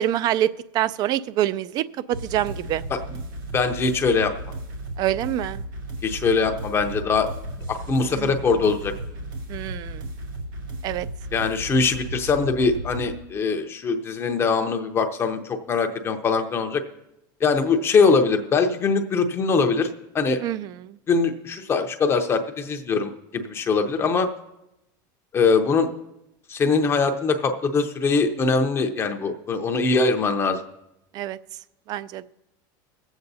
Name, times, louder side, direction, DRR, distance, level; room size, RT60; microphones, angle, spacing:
voice 1, 0.0-2.8 5.0-5.6 8.1-8.3 9.5-10.1 10.8-11.1 20.4-21.0 31.1-31.4 31.9-32.2, right 12 dB, 40° right, 0.4 m, -26 dB
sound 1, 2.1-13.1, right 1 dB, 85° right, 2.4 m, -35 dB
voice 2, 3.5-4.3 6.0-7.3 7.7-8.9 11.3-16.8 17.4-19.9 20.1-20.4 21.1-24.3 25.3-25.9 26.5-30.6, left 4 dB, 25° left, 0.7 m, -22 dB
21.5 x 8.0 x 2.7 m
supercardioid pair, 145°, 11 cm